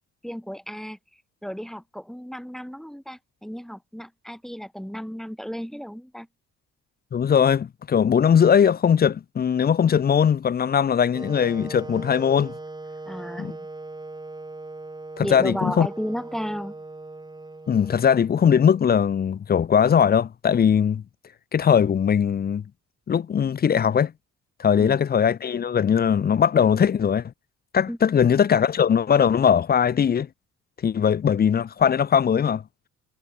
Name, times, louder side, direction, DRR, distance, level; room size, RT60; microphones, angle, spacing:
voice 1, 0.2-1.0 1.4-6.3 13.1-13.7 15.2-16.7 27.9-28.0, equal, ahead, 2.4 m, -33 dB
voice 2, 7.1-12.5 13.4-13.5 15.2-15.9 17.7-21.0 21.5-22.6 23.1-24.1 24.6-27.3 27.7-30.3 30.8-32.6, left 7 dB, 30° left, 0.5 m, -20 dB
Wind instrument woodwind instrument, 11.1-19.1, right 2 dB, 15° right, 1.7 m, -39 dB
cardioid pair, 90°, 30 cm